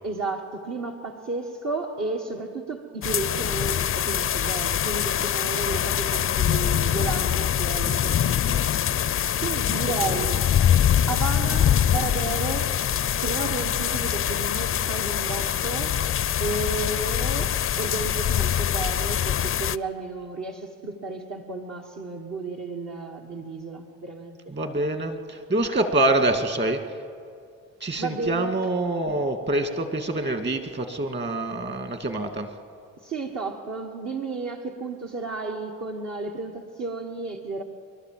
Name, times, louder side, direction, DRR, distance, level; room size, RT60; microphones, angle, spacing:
voice 1, 0.0-9.0 9.4-10.4 11.1-12.8 13.2-16.0 16.4-24.5 28.0-28.7 33.0-37.6, right 3 dB, 55° right, 0 dB, 1.7 m, -33 dB
sound 1, 3.0-19.8, left 10 dB, 40° left, 0.5 m, -24 dB
voice 2, 24.5-26.8 27.8-32.5, right 2 dB, 35° right, 7 dB, 2.3 m, -26 dB
28.5 x 12.0 x 7.8 m, 2.4 s
supercardioid pair, 65°, 32 cm